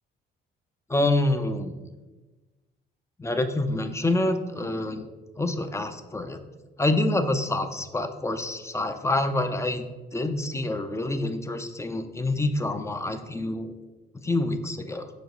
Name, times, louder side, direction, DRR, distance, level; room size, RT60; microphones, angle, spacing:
voice 1, 0.9-1.8 3.2-5.1 5.4-6.4 6.8-9.8 10.1-13.7 14.2-15.1, left 2 dB, 15° left, 8 dB, 0.5 m, -27 dB
5.7 x 5.0 x 3.9 m, 1.2 s
cardioid pair, 90°, 20 cm